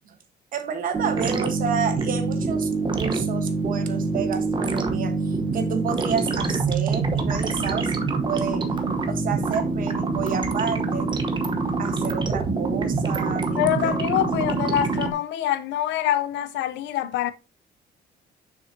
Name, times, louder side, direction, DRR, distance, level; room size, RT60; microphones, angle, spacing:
voice 1, 0.5-8.7 9.1-11.1 11.8-14.0, right 7 dB, 50° right, 1.2 m, -30 dB
sound 1, 0.9-15.1, right 3 dB, 25° right, 1.0 m, -25 dB
voice 2, 13.6-17.3, left 11 dB, 90° left, 0.6 m, -25 dB
7.1 x 6.1 x 2.7 m
cardioid pair, 170°, 18 cm